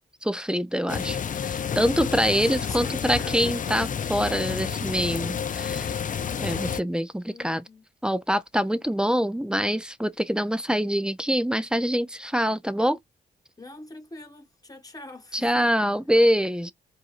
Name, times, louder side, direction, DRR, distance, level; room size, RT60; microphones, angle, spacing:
voice 1, 0.2-5.9 6.4-7.6 8.0-13.0 15.3-16.7, equal, 5° right, 0.5 m, -25 dB
sound 1, 0.9-6.8, left 7 dB, 45° left, 0.5 m, -30 dB
voice 2, 2.3-3.6 7.2-7.8 13.6-15.7, left 2 dB, 20° left, 1.3 m, -44 dB
4.6 x 2.6 x 2.5 m
cardioid pair, 55°, 18 cm